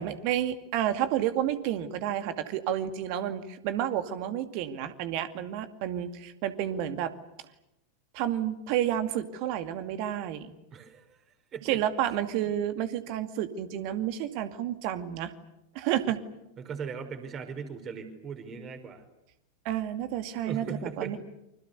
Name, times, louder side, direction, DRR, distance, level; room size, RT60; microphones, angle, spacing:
voice 1, 0.0-7.1 8.1-10.5 11.6-15.3 15.7-16.2 19.6-21.2, right 11 dB, 45° right, 9 dB, 2.3 m, -30 dB
voice 2, 10.7-11.8 16.6-19.0 20.4-21.2, right 6 dB, 30° right, 7 dB, 5.2 m, -39 dB
29.5 x 26.0 x 6.9 m, 0.88 s
figure-of-eight pair, 90°, 0 cm